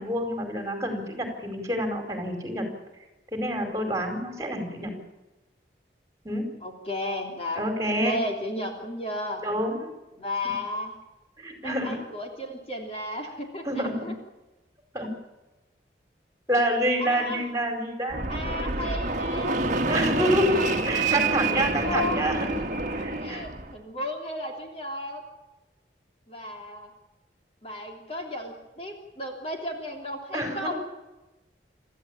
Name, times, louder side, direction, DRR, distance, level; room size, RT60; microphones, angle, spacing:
voice 1, 0.0-2.7 3.3-4.9 6.2-6.5 7.5-8.2 9.4-9.9 11.4-12.0 13.6-14.1 14.9-15.1 16.5-18.3 19.9-22.5 22.9-23.4 30.3-30.7, equal, 20° right, 4 dB, 4.7 m, -28 dB
voice 2, 6.6-7.6 8.0-9.4 10.2-11.0 11.6-14.1 17.0-17.5 18.3-19.9 20.5-21.1 21.6-22.7 23.0-25.2 26.3-26.9 27.6-30.7, left 1 dB, 35° left, 1 dB, 3.4 m, -34 dB
Fixed-wing aircraft airplane, 18.1-23.7, right 3 dB, 45° right, 1.5 m, -27 dB
27.5 x 14.5 x 8.8 m, 1.0 s
head